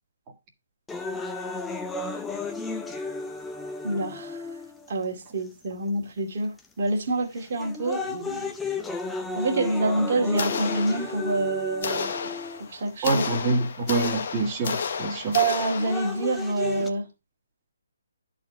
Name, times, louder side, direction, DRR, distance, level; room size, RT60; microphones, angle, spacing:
sound 1, 0.9-4.9 5.6-5.7 6.6-6.9 7.4-12.9 13.9-14.0 15.4-16.9, left 3 dB, 5° left, 0.5 m, -34 dB
voice 1, 3.8-4.4 4.9-8.5 9.3-12.3 12.6-13.2 15.3-17.1, right 2 dB, 40° right, 2.2 m, -27 dB
sound 2, 10.4-11.4 11.8-16.3, left 6 dB, 45° left, 1.0 m, -32 dB
voice 2, 13.0-15.4, right 3 dB, 20° right, 1.6 m, -26 dB
11.0 x 4.3 x 5.3 m
hypercardioid pair, 170°, 0 cm